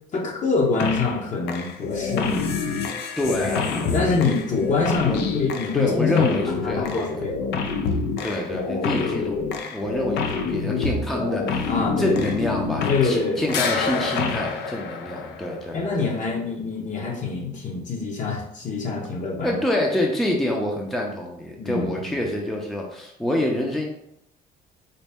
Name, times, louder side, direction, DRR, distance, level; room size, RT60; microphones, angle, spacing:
voice 1, 0.1-2.6 3.4-7.6 8.8-9.1 11.7-12.2 12.9-13.5 14.3-14.4 15.7-19.6 21.6-22.1, left 4 dB, 45° left, 0 dB, 0.9 m, -25 dB
sound 1, 0.8-1.2 1.5-13.2 13.5-15.7, left 5 dB, 85° left, 0.5 m, -27 dB
voice 2, 3.2-3.9 5.0-5.2 5.7-7.1 8.2-9.4 9.7-11.7 12.0-15.8 19.4-23.8, left 1 dB, ahead, 0 dB, 0.5 m, -26 dB
4.0 x 2.1 x 3.5 m, 0.78 s
cardioid pair, 110°, 17 cm